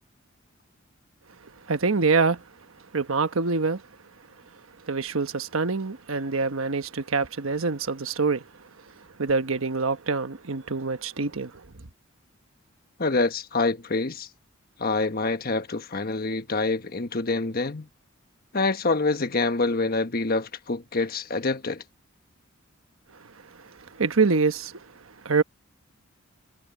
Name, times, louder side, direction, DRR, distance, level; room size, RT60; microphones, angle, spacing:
voice 1, 1.7-2.4 2.9-3.8 4.9-8.4 9.2-11.5 24.0-24.8 25.2-25.4, right 4 dB, 80° right, 1.2 m, -25 dB
voice 2, 13.0-14.3 14.8-17.9 18.5-21.8, left 3 dB, 45° left, 1.3 m, -26 dB
head